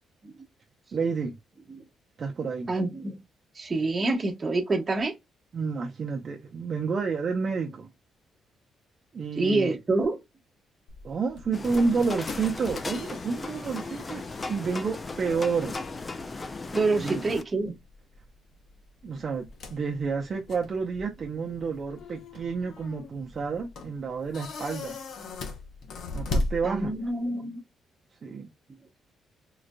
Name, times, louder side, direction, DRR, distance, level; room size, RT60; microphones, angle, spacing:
voice 1, 0.9-1.4 2.2-2.7 5.5-7.9 9.1-9.8 11.0-14.2 14.5-15.7 17.0-17.2 19.0-25.0 26.1-26.9 28.2-28.5, right 5 dB, 45° right, 0.6 m, -30 dB
voice 2, 2.7-3.2 3.5-5.1 9.4-10.2 16.7-17.8 26.6-27.6, right 2 dB, 30° right, 1.0 m, -27 dB
sound 1, 10.9-27.3, left 2 dB, 65° left, 0.7 m, -39 dB
sound 2, 11.5-17.4, left 3 dB, 25° left, 0.4 m, -36 dB
3.9 x 2.4 x 2.2 m
cardioid pair, 90°, 0 cm